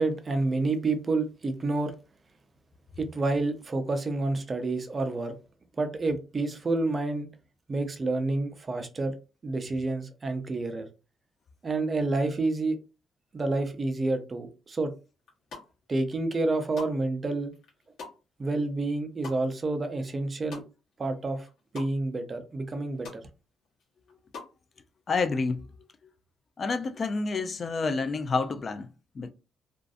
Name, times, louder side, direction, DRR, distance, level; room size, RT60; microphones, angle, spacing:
voice 1, 0.0-1.9 3.0-5.4 5.8-7.3 7.7-9.1 9.4-10.9 11.6-12.8 13.3-14.9 15.9-17.5 18.4-20.6 21.0-21.5 21.7-23.2, right 2 dB, 35° right, 0.5 m, -29 dB
sound 1, 15.2-15.9 16.3-21.1 21.3-21.9 22.3-22.4 22.6-23.2 23.6-24.6, left 4 dB, 75° left, 1.0 m, -45 dB
voice 2, 25.1-25.6 26.6-28.9 29.2-29.3, left 4 dB, 40° left, 0.3 m, -28 dB
2.4 x 2.4 x 2.4 m
cardioid pair, 90°, 0 cm